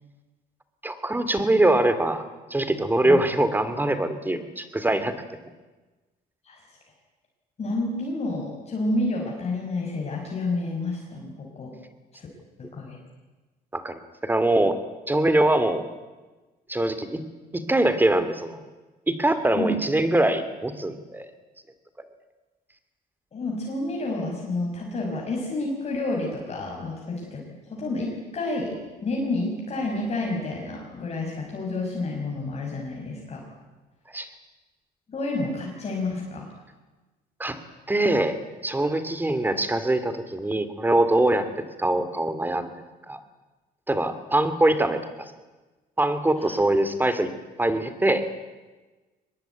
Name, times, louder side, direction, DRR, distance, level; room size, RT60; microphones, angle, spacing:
voice 1, 0.8-5.1 13.7-14.8 15.1-15.8 16.7-17.2 17.5-18.6 19.1-21.3 34.1-34.3 37.4-37.6 37.9-38.3 38.6-41.5 41.8-42.7 43.1-43.2 43.9-45.3 46.0-47.3 47.6-48.2, right 1 dB, 10° right, 11 dB, 2.5 m, -23 dB
voice 2, 7.6-11.7 12.1-12.3 12.6-13.0 19.5-19.7 23.3-33.5 35.1-36.5 46.4-46.5, left 2 dB, 40° left, -1 dB, 5.8 m, -30 dB
23.5 x 21.0 x 9.3 m, 1.2 s
cardioid pair, 110°, 17 cm